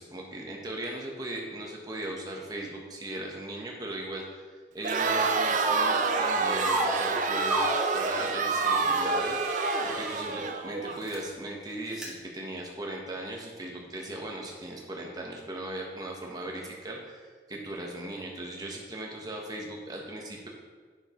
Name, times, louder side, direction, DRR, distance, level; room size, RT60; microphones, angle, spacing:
voice 1, 0.0-4.5 4.7-20.5, right 1 dB, 20° right, -1 dB, 1.1 m, -38 dB
Crowd, 4.8-11.0, right 4 dB, 45° right, 0.4 m, -28 dB
sound 1, 5.6-6.3 6.6-8.0 8.5-10.3 10.9-11.2 11.9-12.1, equal, 5° right, 1.4 m, -32 dB
9.3 x 6.2 x 3.0 m, 1.5 s
head